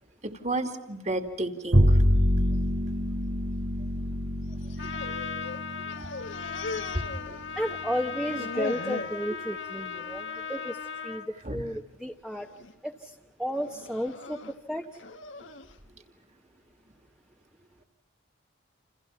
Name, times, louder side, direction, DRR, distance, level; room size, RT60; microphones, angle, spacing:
voice 1, 0.2-2.0 4.8-5.3 6.8-7.0 11.4-11.6, right 2 dB, 35° right, 7 dB, 2.6 m, -33 dB
Bowed string instrument, 1.7-8.2, equal, 70° right, 1.9 m, -27 dB
sound 1, 4.5-5.6 5.9-7.8 8.1-9.2 9.7-10.1 10.4-10.6 11.4-11.8 12.3-12.7 13.5-15.7, left 3 dB, 80° left, 1.5 m, -39 dB
Trumpet, 4.8-11.3, left 6 dB, 60° left, 1.8 m, -37 dB
voice 2, 7.6-10.8 11.0-12.5 12.8-14.4 14.7-14.9, equal, 5° right, 1 dB, 1.1 m, -33 dB
29.5 x 28.5 x 5.8 m, 0.94 s
head